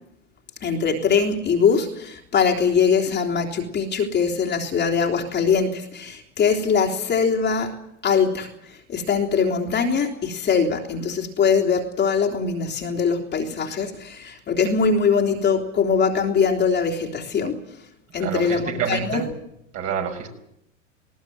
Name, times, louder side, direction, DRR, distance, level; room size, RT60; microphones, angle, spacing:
voice 1, 0.6-17.6 18.1-19.2, left 6 dB, 25° left, 0 dB, 3.5 m, -22 dB
voice 2, 18.1-19.3 19.7-20.3, right 7 dB, 40° right, 3 dB, 6.3 m, -28 dB
20.0 x 19.0 x 9.4 m, 0.78 s
hypercardioid pair, 115°, 37 cm